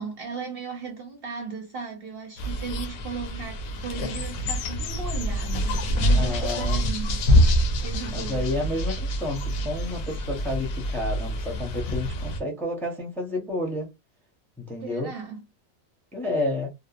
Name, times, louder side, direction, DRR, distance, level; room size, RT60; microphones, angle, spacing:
voice 1, 0.0-7.3 7.8-8.5 14.8-15.4, right 5 dB, 60° right, 0.7 m, -36 dB
sound 1, 2.4-12.4, equal, 90° left, 1.0 m, -26 dB
voice 2, 6.1-6.9 8.1-13.9 14.6-15.1 16.1-16.7, left 2 dB, ahead, 0.5 m, -30 dB
2.8 x 2.0 x 2.4 m
omnidirectional pair, 1.4 m